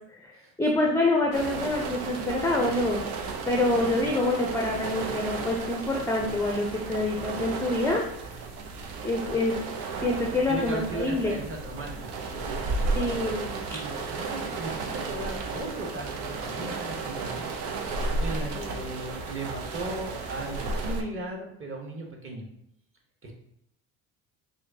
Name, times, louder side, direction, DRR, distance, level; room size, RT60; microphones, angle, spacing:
voice 1, 0.6-3.1 3.5-8.0 9.0-9.5 10.0-11.4 13.0-13.6 18.5-18.7, left 2 dB, 5° left, 0 dB, 0.5 m, -26 dB
sound 1, 1.3-21.0, right 3 dB, 75° right, 0.8 m, -33 dB
voice 2, 10.2-13.1 13.7-17.4 18.2-22.4 23.2-23.3, right 2 dB, 30° right, 0 dB, 1.1 m, -37 dB
4.8 x 2.2 x 2.7 m, 0.76 s
hypercardioid pair, 70°, 44 cm